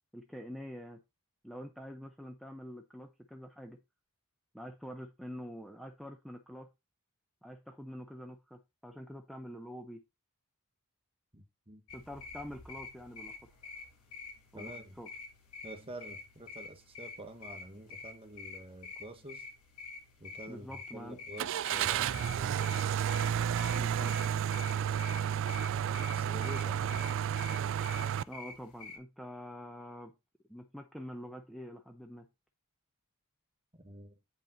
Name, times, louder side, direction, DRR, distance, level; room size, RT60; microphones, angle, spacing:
voice 1, 0.1-1.0 1.4-3.8 4.5-6.7 7.4-10.0 11.9-13.4 14.5-15.1 20.5-21.2 23.7-24.5 28.2-30.1 30.5-32.3, equal, ahead, 0.6 m, -46 dB
voice 2, 11.3-11.8 14.5-15.0 15.6-19.5 20.2-20.7 20.9-22.7 25.6-27.2 33.8-34.2, right 1 dB, 25° right, 1.4 m, -48 dB
sound 1, 11.9-29.0, left 4 dB, 75° left, 2.4 m, -48 dB
Car / Engine starting, 21.4-28.2, right 9 dB, 60° right, 0.3 m, -31 dB
8.8 x 5.3 x 3.9 m
head